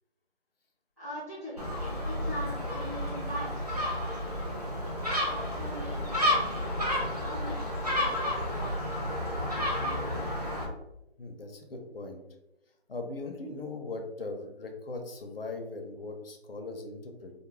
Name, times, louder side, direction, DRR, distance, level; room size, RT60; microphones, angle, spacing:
voice 1, 1.0-4.6 4.9-8.8 9.3-10.2, equal, 15° right, -13 dB, 0.9 m, -42 dB
Gull seagull, 1.6-10.6, left 1 dB, 40° right, 0.4 m, -31 dB
voice 2, 11.2-12.2 12.9-17.3, left 3 dB, 60° left, 4 dB, 0.6 m, -39 dB
2.3 x 2.2 x 3.0 m, 0.92 s
figure-of-eight pair, 165°, 32 cm